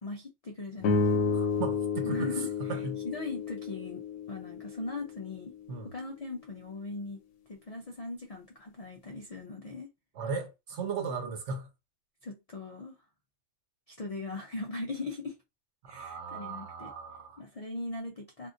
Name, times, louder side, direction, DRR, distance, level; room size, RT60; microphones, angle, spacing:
voice 1, 0.0-1.4 2.0-2.8 3.0-5.5 5.8-7.2 7.5-9.9 12.2-13.0 13.9-15.4 15.9-16.9 17.4-18.5, left 2 dB, 60° left, 0.4 m, -39 dB
sound 1, 0.8-5.3, left 4 dB, 80° left, 1.0 m, -31 dB
voice 2, 1.3-3.0 5.7-5.9 10.1-11.7 15.8-17.4, right 4 dB, 65° right, 1.1 m, -37 dB
3.6 x 2.5 x 2.5 m
omnidirectional pair, 1.4 m